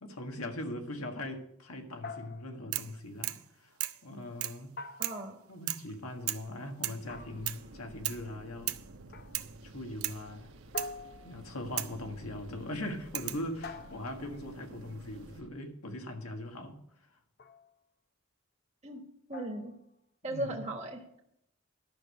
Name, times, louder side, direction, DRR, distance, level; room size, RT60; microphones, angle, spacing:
voice 1, 0.0-3.7 4.0-4.7 5.5-8.8 9.6-10.5 11.2-16.8 20.2-20.7, left 1 dB, 85° left, 1.7 m, -40 dB
sound 1, 2.0-2.8 4.8-5.6 7.1-7.7 9.1-9.5 10.7-11.7 13.6-14.4 17.4-17.7 19.3-19.8, left 3 dB, 45° left, 0.6 m, -45 dB
sound 2, 2.7-3.0 3.2-3.5 3.8-4.0 4.4-4.6 5.0-5.3 5.7-5.9 6.3-6.5 6.8-7.1 7.5-7.6 8.0-8.3 8.7-8.9 9.3-9.6 10.0-10.2 10.8-11.0 11.8-12.0 13.1-13.5 14.6-15.1, right 15 dB, 85° right, 0.6 m, -36 dB
voice 2, 5.0-5.4 18.8-19.0 19.3-19.7 20.2-21.2, right 1 dB, 30° right, 1.4 m, -37 dB
sound 3, 7.0-15.5, right 2 dB, 65° right, 1.1 m, -52 dB
11.5 x 6.5 x 6.4 m
head